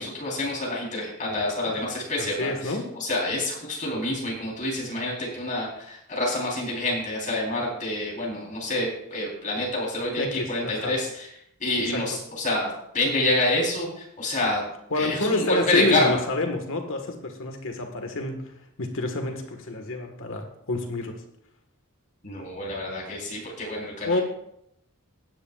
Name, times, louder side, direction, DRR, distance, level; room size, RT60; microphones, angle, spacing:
voice 1, 0.0-11.3 11.6-14.6 15.0-16.2 22.2-24.2, left 1 dB, 35° left, -3 dB, 4.0 m, -27 dB
voice 2, 2.2-2.9 10.2-11.0 11.8-12.2 14.9-18.5 18.8-21.2 24.0-24.2, left 2 dB, 65° left, 4 dB, 1.6 m, -28 dB
16.5 x 10.0 x 2.5 m, 0.76 s
head